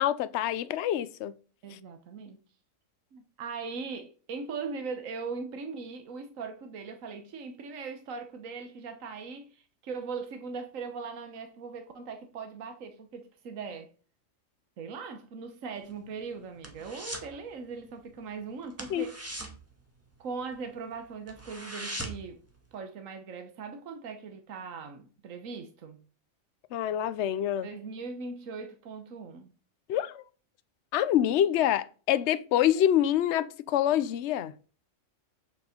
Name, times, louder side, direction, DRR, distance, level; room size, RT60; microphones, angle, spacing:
voice 1, 0.0-1.3 18.9-19.1 26.7-27.7 29.9-30.2 30.9-34.5, left 11 dB, 65° left, 0.9 m, -26 dB
voice 2, 1.6-2.4 3.1-13.9 14.8-19.2 20.2-22.4 22.7-26.0 27.6-29.5, right 5 dB, 75° right, 1.4 m, -40 dB
sound 1, 15.8-17.4 17.6-17.9 18.2-18.3 18.7-20.6 20.9-21.0 21.3-22.4 22.7-22.8, right 1 dB, 10° right, 1.8 m, -40 dB
9.0 x 6.0 x 5.0 m
omnidirectional pair, 1.4 m